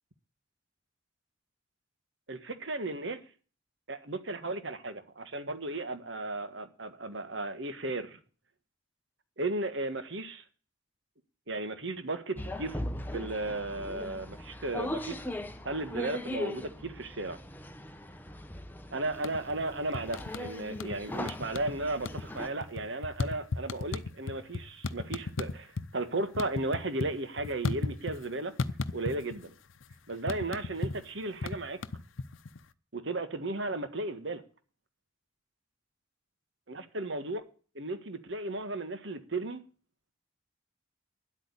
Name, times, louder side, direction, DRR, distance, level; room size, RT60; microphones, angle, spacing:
voice 1, 2.3-3.2 3.9-8.2 9.4-10.4 11.5-12.8 13.1-15.2 15.6-17.4 18.9-28.5 28.9-29.5 30.1-31.8 32.9-34.4 36.7-37.4 37.7-39.6, right 2 dB, 65° right, 1.6 m, -35 dB
sound 1, 12.4-22.5, left 1 dB, 10° left, 1.1 m, -39 dB
sound 2, 19.1-19.6 19.9-21.0 21.3-21.8 22.0-25.9 26.2-28.3 28.6-29.5 29.7-32.6, left 3 dB, 85° left, 0.7 m, -35 dB
11.0 x 8.4 x 9.8 m
head